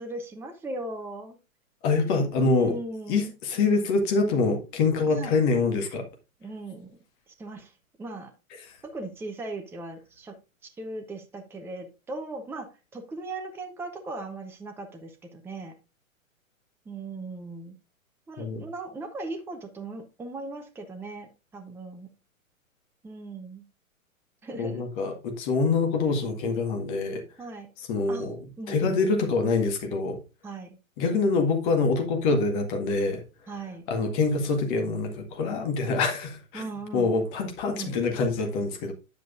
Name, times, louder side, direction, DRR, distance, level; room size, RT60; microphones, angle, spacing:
voice 1, 0.0-1.4 2.4-3.3 5.1-5.3 6.4-7.0 7.4-7.7 8.0-8.3 8.8-10.4 10.6-12.7 12.9-15.7 16.9-17.8 18.3-22.1 23.0-23.6 24.4-24.8 27.4-27.7 28.1-29.0 30.4-30.8 33.5-33.9 36.5-37.1 37.7-38.0, right 2 dB, 5° right, 0.8 m, -38 dB
voice 2, 1.8-2.7 3.1-6.1 18.4-18.6 24.6-27.2 27.9-28.4 28.7-30.2 31.0-33.2 33.9-36.6 36.9-38.9, left 4 dB, 35° left, 1.8 m, -25 dB
9.3 x 7.8 x 2.5 m
figure-of-eight pair, 110°, 41 cm